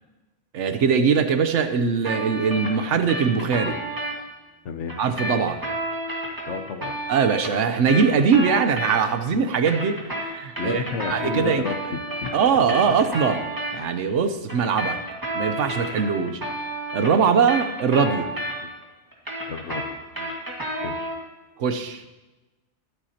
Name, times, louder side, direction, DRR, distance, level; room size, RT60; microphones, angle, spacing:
voice 1, 0.5-3.8 5.0-5.6 7.1-11.6 12.3-13.5 13.7-15.0 15.3-16.4 16.9-18.3 21.6-22.0, right 6 dB, 80° right, 9 dB, 1.1 m, -21 dB
sound 1, 2.0-4.1 4.9-9.2 9.5-13.7 14.5-18.8 19.1-21.2, right 1 dB, 15° right, 1.8 m, -31 dB
voice 2, 4.6-5.0 6.5-6.9 10.6-12.3 19.5-20.4 20.8-21.1, left 5 dB, 75° left, 8 dB, 1.2 m, -32 dB
22.0 x 7.9 x 2.9 m, 1.1 s
omnidirectional pair, 1.2 m